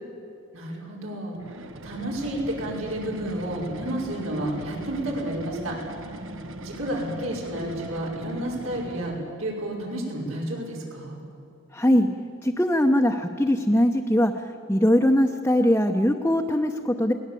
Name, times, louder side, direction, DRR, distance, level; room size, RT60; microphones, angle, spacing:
voice 1, 0.5-5.8 6.6-11.2, right 1 dB, 90° right, -2 dB, 5.6 m, -31 dB
sound 1, 1.4-9.4, right 1 dB, 70° right, 1.3 m, -40 dB
voice 2, 11.7-12.1 12.4-14.3 14.7-17.1, left 1 dB, 10° left, 1 dB, 0.8 m, -21 dB
22.5 x 18.0 x 8.4 m, 2.7 s
head